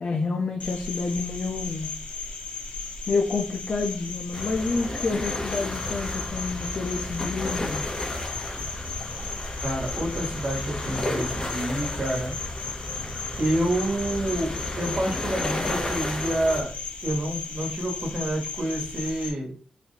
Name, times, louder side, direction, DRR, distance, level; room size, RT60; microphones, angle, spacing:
voice 1, 0.0-1.9 3.1-7.8, left 3 dB, 50° left, 0.6 m, -28 dB
Cricket, 0.6-19.3, left 4 dB, 70° left, 1.1 m, -36 dB
sound 1, 4.3-16.6, left 1 dB, 30° left, 1.2 m, -33 dB
voice 2, 9.6-12.3 13.4-19.5, right 1 dB, 45° right, 1.6 m, -28 dB
4.2 x 2.7 x 4.2 m
wide cardioid pair, 90°, 2 cm